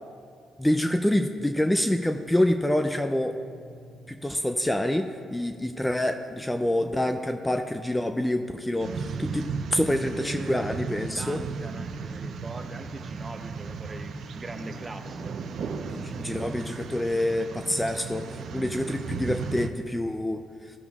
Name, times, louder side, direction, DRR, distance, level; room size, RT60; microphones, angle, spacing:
voice 1, 0.6-3.4 4.1-11.4 15.9-20.4, left 1 dB, 10° left, 7 dB, 0.4 m, -27 dB
sound 1, 1.6-19.6, left 2 dB, 45° left, 1.6 m, -51 dB
sound 2, 8.8-19.7, right 5 dB, 65° right, 0.6 m, -35 dB
voice 2, 10.1-10.8 11.1-15.3, right 2 dB, 25° right, 6 dB, 0.8 m, -40 dB
16.0 x 6.9 x 2.4 m, 2.2 s
cardioid pair, 90°, 0 cm